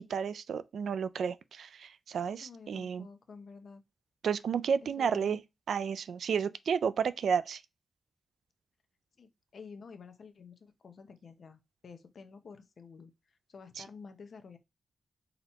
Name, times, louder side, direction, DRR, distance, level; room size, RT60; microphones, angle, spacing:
voice 1, 0.0-3.1 4.2-5.4 5.7-7.6, right 7 dB, 80° right, 0.3 m, -32 dB
voice 2, 2.4-3.8 4.8-5.4 9.2-13.1 13.5-14.6, left 5 dB, 60° left, 0.7 m, -50 dB
4.0 x 2.9 x 4.1 m
wide cardioid pair, 115°, 0 cm